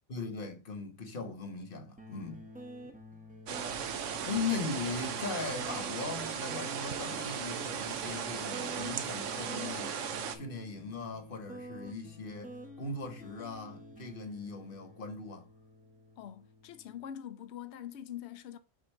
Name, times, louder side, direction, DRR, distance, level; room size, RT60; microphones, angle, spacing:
voice 1, 0.1-2.5 4.2-10.0 10.3-12.5 12.8-15.5, left 4 dB, 50° left, 1.3 m, -39 dB
sound 1, 2.0-17.0, equal, 10° right, 0.8 m, -49 dB
sound 2, 3.5-10.4, right 7 dB, 90° right, 1.1 m, -37 dB
voice 2, 16.2-18.6, left 10 dB, 70° left, 0.9 m, -44 dB
6.3 x 2.7 x 5.4 m
omnidirectional pair, 1.2 m